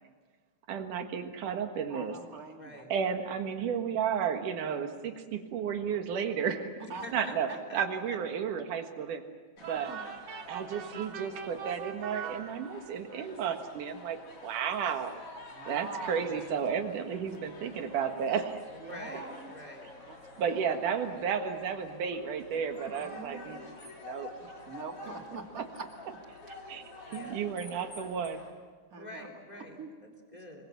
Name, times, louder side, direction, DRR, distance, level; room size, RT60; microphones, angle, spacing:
voice 1, 0.7-2.2 2.9-9.2 9.6-9.9 10.5-15.2 15.7-18.6 20.4-24.3 25.6-25.7 26.7-26.8 27.1-28.4, right 7 dB, 85° right, 6 dB, 3.2 m, -33 dB
voice 2, 1.9-2.9 6.9-7.0 9.9-10.0 15.6-16.3 18.8-19.5 20.1-20.6 23.0-23.7 24.7-25.9 26.5-26.6 28.9-29.3 29.5-29.9, right 4 dB, 30° right, 3 dB, 2.3 m, -43 dB
voice 3, 2.5-2.9 7.0-7.8 18.7-19.9 27.1-27.4 29.0-30.7, left 1 dB, 15° left, 1 dB, 3.3 m, -46 dB
sound 1, 9.6-28.5, left 2 dB, 50° left, 3.9 m, -49 dB
sound 2, 9.6-13.1, right 9 dB, 65° right, 2.1 m, -43 dB
26.5 x 23.0 x 7.4 m, 1.5 s
omnidirectional pair, 3.5 m